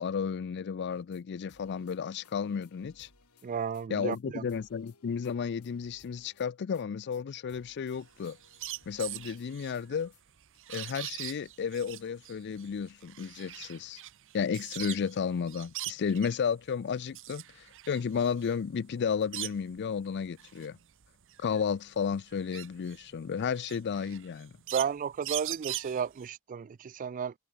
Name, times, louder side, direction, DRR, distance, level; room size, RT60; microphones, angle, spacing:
voice 1, 0.0-3.1 3.9-8.4 8.9-10.1 10.7-14.0 14.3-20.8 21.4-24.5, left 6 dB, 50° left, 0.4 m, -33 dB
sound 1, 0.9-1.2 1.5-3.9 4.1-4.2 4.5-6.9 7.1-7.2 7.5-10.2, left 4 dB, 90° left, 7.0 m, -63 dB
voice 2, 3.4-4.4 24.7-27.3, right 7 dB, 35° right, 0.3 m, -33 dB
sound 2, 7.9-15.2 15.5-16.4 16.9-19.8 20.3-26.3, right 15 dB, 60° right, 0.9 m, -42 dB
head